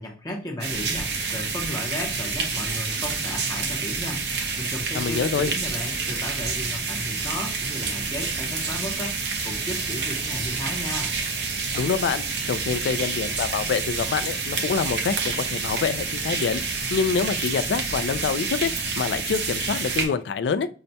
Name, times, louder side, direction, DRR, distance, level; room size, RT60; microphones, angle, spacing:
voice 1, 0.0-4.3 4.6-11.1, left 1 dB, 20° left, 1 dB, 0.7 m, -34 dB
sound 1, 0.6-20.1, right 4 dB, 70° right, 0.7 m, -28 dB
voice 2, 4.9-5.5 11.7-20.7, left 5 dB, 75° left, 12 dB, 0.3 m, -26 dB
5.6 x 2.1 x 2.6 m, 0.40 s
head